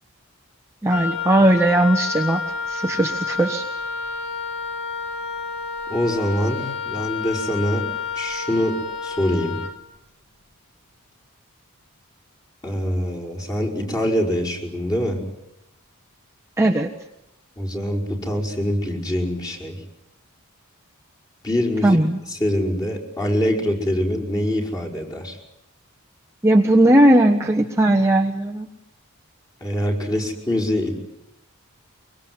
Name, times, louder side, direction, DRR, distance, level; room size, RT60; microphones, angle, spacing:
voice 1, 0.8-2.4 2.7-3.6 16.6-16.9 21.8-22.2 26.4-28.7, right 1 dB, 10° right, 1 dB, 1.2 m, -17 dB
Wind instrument woodwind instrument, 0.9-9.8, left 5 dB, 55° left, 2.5 m, -29 dB
voice 2, 5.9-7.9 8.1-8.8 9.0-9.6 12.6-15.2 17.6-19.8 21.4-22.0 22.3-25.4 29.6-31.0, equal, 20° left, -2 dB, 5.3 m, -24 dB
24.5 x 23.5 x 9.7 m, 0.85 s
head